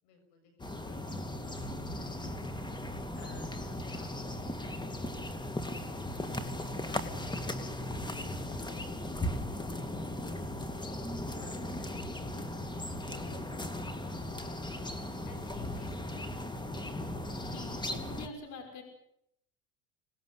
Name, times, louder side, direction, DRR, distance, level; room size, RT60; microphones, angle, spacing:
voice 1, 0.0-2.8 3.1-6.5 6.8-11.0 11.4-14.9 15.2-17.7, left 4 dB, 80° left, 6 dB, 7.2 m, -59 dB
sound 1, 0.6-18.3, left 1 dB, 15° left, 2.5 m, -37 dB
voice 2, 17.4-18.8, left 4 dB, 60° left, 5 dB, 6.4 m, -45 dB
26.0 x 19.5 x 8.2 m, 0.77 s
supercardioid pair, 100°, 33 cm